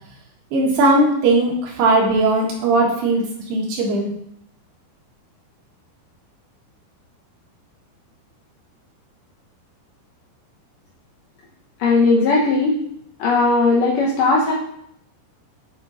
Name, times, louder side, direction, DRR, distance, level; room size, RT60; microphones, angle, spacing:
voice 1, 0.5-4.1, right 2 dB, 75° right, -3 dB, 3.6 m, -18 dB
voice 2, 11.8-12.8 13.2-14.5, left 3 dB, 75° left, -2 dB, 1.9 m, -17 dB
9.2 x 4.4 x 4.1 m, 0.72 s
omnidirectional pair, 4.8 m